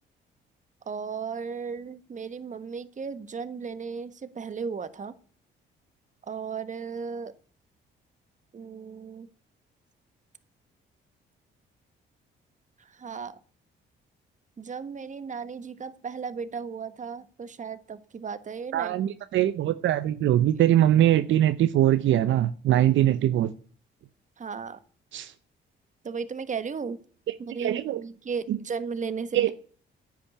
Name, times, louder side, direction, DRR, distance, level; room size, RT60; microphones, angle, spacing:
voice 1, 0.9-5.1 6.3-7.3 8.5-9.3 13.0-13.3 14.6-19.0 24.4-24.8 26.0-27.0 27.4-29.4, right 5 dB, 40° right, 12 dB, 1.4 m, -35 dB
voice 2, 18.7-23.5 25.1-25.3 27.3-28.0 28.5-28.6 29.3-29.5, right 12 dB, 75° right, 12 dB, 0.7 m, -22 dB
10.0 x 8.6 x 8.4 m, 0.44 s
cardioid pair, 90°, 20 cm